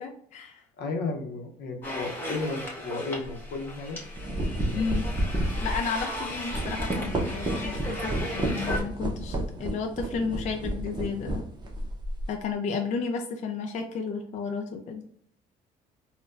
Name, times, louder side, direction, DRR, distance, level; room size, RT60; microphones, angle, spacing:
voice 1, 0.0-0.6 4.7-5.1 5.6-11.5 12.3-15.0, left 5 dB, 45° left, 4 dB, 0.4 m, -32 dB
voice 2, 0.8-4.0, left 3 dB, 75° left, 3 dB, 0.8 m, -33 dB
sound 1, 1.8-8.8, left 1 dB, 10° left, 1.1 m, -36 dB
sound 2, 3.2-3.4 4.0-12.4, right 1 dB, 25° right, 0.7 m, -31 dB
4.3 x 2.2 x 2.4 m, 0.66 s
cardioid pair, 110°, 17 cm